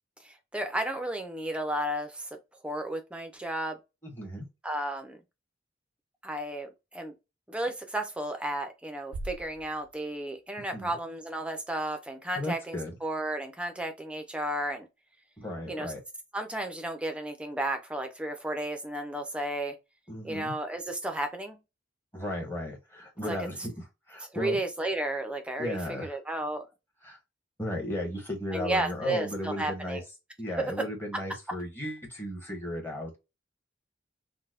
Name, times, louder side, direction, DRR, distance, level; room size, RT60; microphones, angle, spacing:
voice 1, 0.2-3.8 4.6-5.2 6.2-7.1 7.5-14.9 15.7-15.9 16.3-19.8 20.2-21.6 23.3-23.5 24.2-26.7 28.5-30.0 30.6-30.9, right 1 dB, 5° right, 0.5 m, -33 dB
voice 2, 4.0-4.5 10.7-10.9 12.4-13.0 15.4-16.0 20.1-20.6 22.1-24.6 25.6-26.1 27.0-27.2 27.6-30.0 30.4-33.2, left 1 dB, 10° left, 1.1 m, -35 dB
sound 1, 9.1-11.2, right 2 dB, 75° right, 0.4 m, -43 dB
3.8 x 2.2 x 2.4 m
head